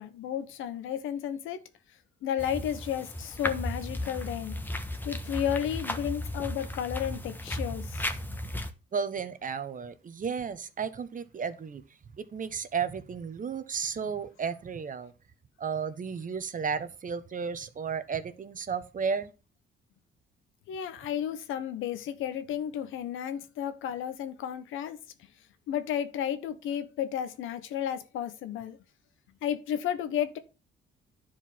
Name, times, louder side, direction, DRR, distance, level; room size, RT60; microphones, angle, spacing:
voice 1, 0.0-1.6 2.2-4.6 5.0-8.1 20.7-25.3 25.7-28.8 29.4-30.4, left 9 dB, 90° left, 1.2 m, -33 dB
sound 1, 2.4-8.7, left 1 dB, 10° left, 1.3 m, -35 dB
voice 2, 8.9-11.8 12.3-15.1 15.6-19.3, right 6 dB, 45° right, 1.2 m, -33 dB
10.5 x 4.8 x 5.9 m
cardioid pair, 90°, 20 cm